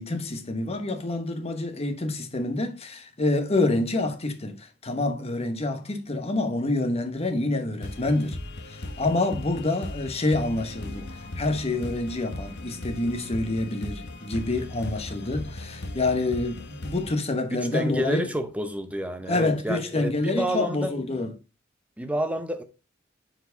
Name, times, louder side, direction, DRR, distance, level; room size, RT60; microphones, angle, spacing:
voice 1, 0.0-8.4 8.6-18.3 19.3-21.3, left 2 dB, 35° left, 1.1 m, -27 dB
sound 1, 7.8-17.1, left 2 dB, 60° left, 1.0 m, -38 dB
voice 2, 17.5-20.9 22.0-22.6, right 1 dB, 5° right, 0.7 m, -29 dB
6.7 x 4.6 x 3.9 m
head